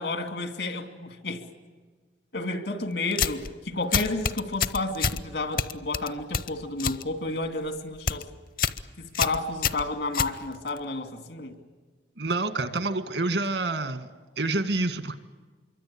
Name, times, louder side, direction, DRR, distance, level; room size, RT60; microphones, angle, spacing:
voice 1, 0.0-1.4 2.3-8.3 9.0-11.6, left 2 dB, 80° left, 2.6 m, -31 dB
sound 1, 3.1-3.5 3.9-5.2 5.6-7.0 7.4-7.7 7.9-8.2 8.6-8.8 9.1-10.8, left 6 dB, 55° left, 0.8 m, -27 dB
voice 2, 12.2-14.1 14.4-15.1, right 2 dB, 85° right, 1.8 m, -27 dB
26.0 x 23.5 x 8.7 m
head